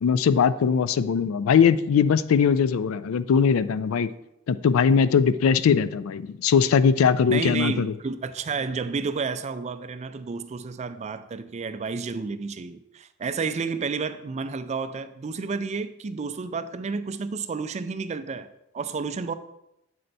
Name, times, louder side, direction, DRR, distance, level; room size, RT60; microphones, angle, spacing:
voice 1, 0.0-4.1 4.5-7.9, left 6 dB, 90° left, 0.4 m, -20 dB
voice 2, 7.3-18.5 18.7-19.3, right 4 dB, 35° right, 0.4 m, -31 dB
7.7 x 4.4 x 4.0 m
head